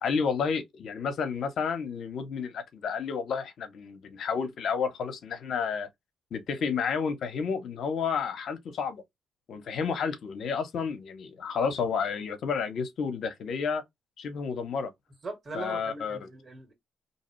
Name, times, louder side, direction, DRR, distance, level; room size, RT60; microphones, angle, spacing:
voice 1, 0.0-5.9 6.3-9.0 9.5-13.8 14.2-14.9 15.5-16.2, left 6 dB, 65° left, 0.8 m, -31 dB
voice 2, 15.2-16.7, right 3 dB, 35° right, 1.7 m, -40 dB
2.8 x 2.3 x 3.0 m
cardioid pair, 90°, 0 cm